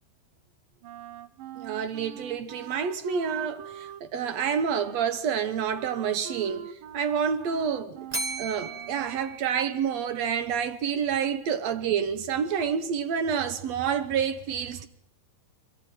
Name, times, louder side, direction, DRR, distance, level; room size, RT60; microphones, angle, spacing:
Wind instrument woodwind instrument, 0.8-9.4, right 11 dB, 80° right, 2.8 m, -44 dB
voice 1, 1.6-8.1 8.4-14.9, right 7 dB, 65° right, 1.9 m, -28 dB
Bell, 8.1-10.3, right 2 dB, 40° right, 0.5 m, -36 dB
25.5 x 14.0 x 9.0 m
omnidirectional pair, 4.0 m